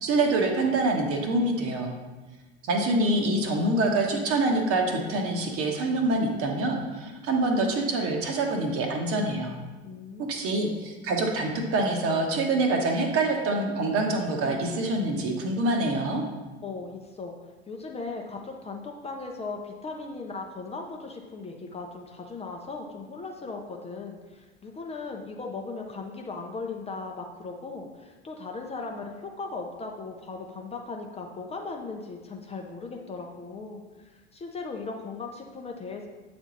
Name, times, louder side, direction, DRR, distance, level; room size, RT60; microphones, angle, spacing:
voice 1, 0.0-1.9 2.6-9.6 10.2-16.2, right 2 dB, 45° right, 2 dB, 1.1 m, -25 dB
voice 2, 9.8-10.5 16.6-17.4 17.7-36.1, left 4 dB, 20° left, 1 dB, 0.6 m, -38 dB
8.2 x 3.5 x 3.9 m, 1.2 s
figure-of-eight pair, 70°, 33 cm